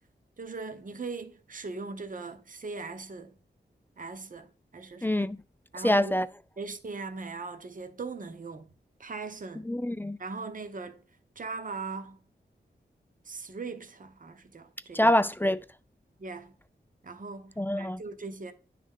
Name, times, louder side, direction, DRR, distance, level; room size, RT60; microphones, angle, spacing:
voice 1, 0.4-3.4 4.0-5.2 5.7-6.2 6.6-8.7 9.0-9.7 10.2-11.0 11.4-12.2 13.3-15.1 16.2-16.5 17.0-18.5, right 4 dB, 45° right, 0.8 m, -40 dB
voice 2, 5.0-5.4 5.8-6.3 9.7-10.2 14.9-15.6 17.6-18.0, left 1 dB, 10° left, 0.4 m, -25 dB
9.8 x 3.3 x 3.6 m
cardioid pair, 50°, 19 cm